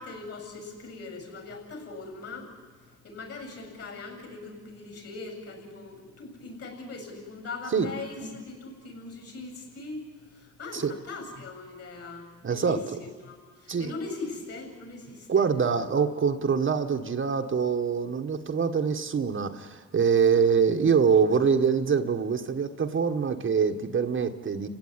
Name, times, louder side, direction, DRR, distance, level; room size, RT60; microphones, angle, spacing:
voice 1, 0.0-2.5 3.0-15.5 20.3-20.4, left 3 dB, 50° left, 3 dB, 7.5 m, -40 dB
voice 2, 12.4-12.8 13.7-13.9 15.3-24.7, right 6 dB, 40° right, 5 dB, 1.6 m, -24 dB
29.5 x 16.5 x 9.8 m, 1.5 s
cardioid pair, 90°, 30 cm